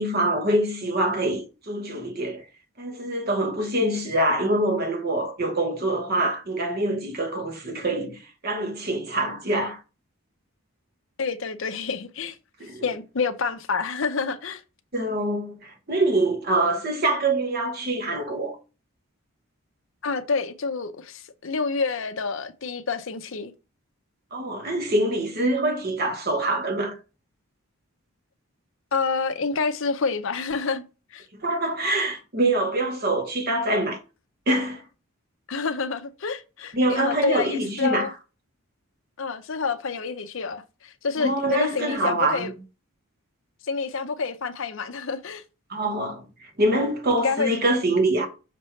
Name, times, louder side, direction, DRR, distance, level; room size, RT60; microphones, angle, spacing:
voice 1, 0.0-2.4 2.8-9.8 12.6-12.9 14.9-18.6 24.3-27.0 31.4-34.0 34.5-34.8 36.7-38.1 41.2-42.6 45.7-48.3, right 1 dB, 45° right, 1.1 m, -25 dB
voice 2, 11.2-12.4 12.8-14.6 20.0-23.5 28.9-30.8 31.1-31.3 35.5-38.1 39.2-42.5 43.7-45.4 47.2-47.6, left 4 dB, 60° left, 0.6 m, -28 dB
5.9 x 3.2 x 5.5 m
head